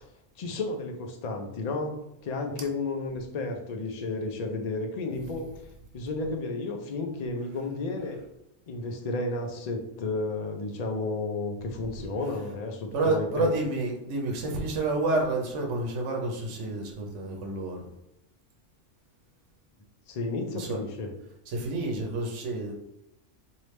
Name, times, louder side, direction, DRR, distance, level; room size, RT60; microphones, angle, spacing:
voice 1, 0.4-1.9 2.2-5.5 5.9-8.2 8.7-13.5 20.1-21.1, left 3 dB, 50° left, 3 dB, 0.5 m, -32 dB
voice 2, 12.9-17.8 20.5-20.8 21.5-22.7, right 2 dB, 75° right, 1 dB, 1.0 m, -29 dB
3.2 x 2.7 x 3.1 m, 0.87 s
omnidirectional pair, 1.2 m